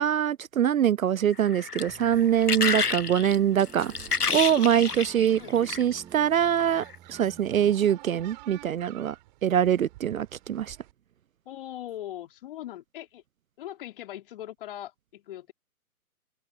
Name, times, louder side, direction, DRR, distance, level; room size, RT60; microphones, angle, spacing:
voice 1, 0.0-3.9 4.3-9.2 9.4-10.8, right 9 dB, 65° right, 0.5 m, -24 dB
sound 1, 1.3-6.0 6.7-6.9, left 5 dB, 90° left, 1.0 m, -29 dB
sound 2, 1.9-7.7, right 9 dB, 10° right, 1.4 m, -50 dB
sound 3, 3.5-10.9, right 20 dB, 30° right, 4.7 m, -51 dB
voice 2, 5.4-5.8 11.5-13.2 13.6-15.5, left 12 dB, 35° left, 3.8 m, -40 dB
open air
figure-of-eight pair, 130°, 45 cm